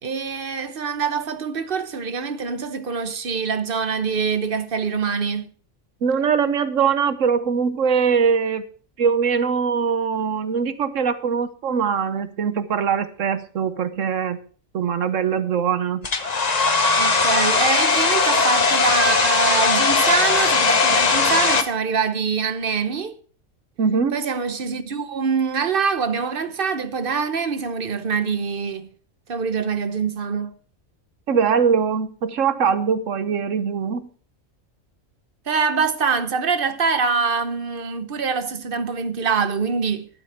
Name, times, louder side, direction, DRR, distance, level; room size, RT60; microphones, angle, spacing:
voice 1, 0.0-5.5 17.0-23.1 24.1-28.9 29.3-30.6 35.5-40.1, right 5 dB, 45° right, 1.0 m, -24 dB
voice 2, 6.0-8.6 9.0-14.4 14.7-16.1 23.8-24.2 31.3-34.1, right 6 dB, 70° right, 1.2 m, -22 dB
Domestic sounds home sounds, 16.0-21.6, left 4 dB, 35° left, 1.0 m, -19 dB
12.0 x 12.0 x 3.5 m
omnidirectional pair, 1.4 m